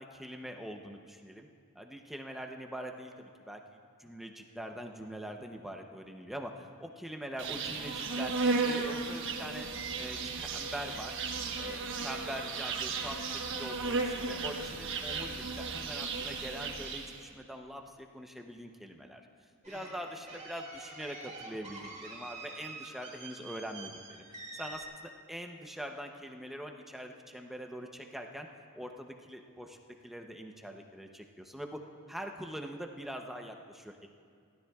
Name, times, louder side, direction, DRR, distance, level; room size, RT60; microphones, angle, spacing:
voice 1, 0.0-1.5 1.8-3.6 4.0-8.3 8.6-9.7 10.0-11.2 11.6-19.2 19.7-24.2 24.5-28.5 28.7-29.8 30.0-31.8 32.1-34.1, equal, ahead, 3 dB, 0.6 m, -43 dB
Insect, 7.4-17.2, right 4 dB, 60° right, 1.2 m, -35 dB
sound 1, 19.6-24.8, right 3 dB, 30° right, 2.5 m, -46 dB
28.5 x 13.0 x 2.3 m, 2.3 s
head